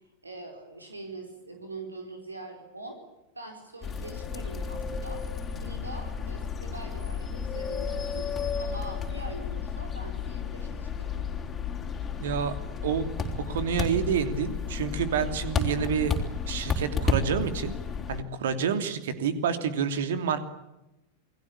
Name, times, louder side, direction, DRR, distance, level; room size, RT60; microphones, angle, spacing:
voice 1, 0.0-3.0 3.3-5.3 5.6-8.3 8.6-11.3 12.2-12.3, right 2 dB, 80° right, 4 dB, 4.7 m, -43 dB
sound 1, 3.8-18.2, left 5 dB, 20° left, 4.2 m, -32 dB
voice 2, 12.2-12.5 12.8-13.1 13.4-16.1 16.5-17.7 18.1-20.4, right 7 dB, 60° right, 10 dB, 3.0 m, -28 dB
28.5 x 21.0 x 8.7 m, 0.94 s
figure-of-eight pair, 90°, 0 cm